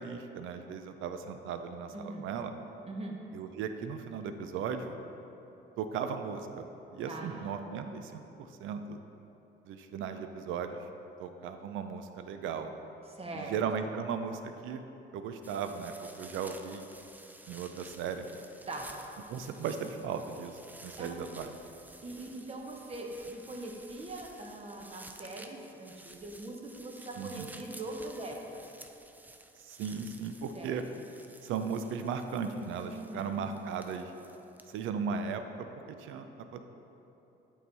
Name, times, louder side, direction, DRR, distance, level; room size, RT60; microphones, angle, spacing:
voice 1, 0.0-2.5 3.3-5.0 5.8-9.0 9.7-10.8 11.2-12.7 13.3-14.8 15.1-16.9 17.5-18.2 19.3-21.5 27.2-27.5 29.6-30.8 31.4-34.1 34.7-36.6, right 6 dB, 85° right, 7 dB, 0.5 m, -37 dB
voice 2, 1.9-2.3 2.8-3.2 7.0-7.5 13.1-13.6 18.7-18.8 21.0-21.3 22.0-28.6 30.5-30.8 32.8-33.4, right 2 dB, 30° right, 0 dB, 1.0 m, -42 dB
sound 1, 15.4-34.9, right 2 dB, 10° right, 0.4 m, -53 dB
8.4 x 3.9 x 4.0 m, 3.0 s
cardioid pair, 90°, 20 cm